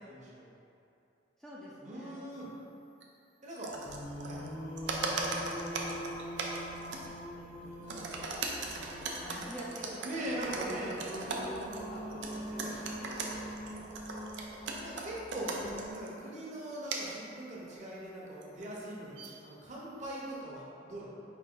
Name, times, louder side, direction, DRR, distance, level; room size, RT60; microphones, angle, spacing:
voice 1, 0.0-0.5 1.8-2.5 3.4-3.7 4.2-4.4 10.0-11.0 12.4-13.7 14.8-15.5 15.9-21.2, right 1 dB, 40° right, -5 dB, 0.9 m, -42 dB
voice 2, 1.4-2.2 3.8-4.1 5.1-6.2 7.4-14.0, equal, ahead, -7 dB, 0.4 m, -50 dB
sound 1, 3.0-3.1 3.5-4.5 4.8-7.2 7.7-16.1 16.9-17.1 18.4-19.4, right 3 dB, 75° right, 0.5 m, -39 dB
Singing, 3.8-15.9, equal, 70° left, 1.1 m, -43 dB
4.9 x 2.7 x 3.8 m, 2.7 s
head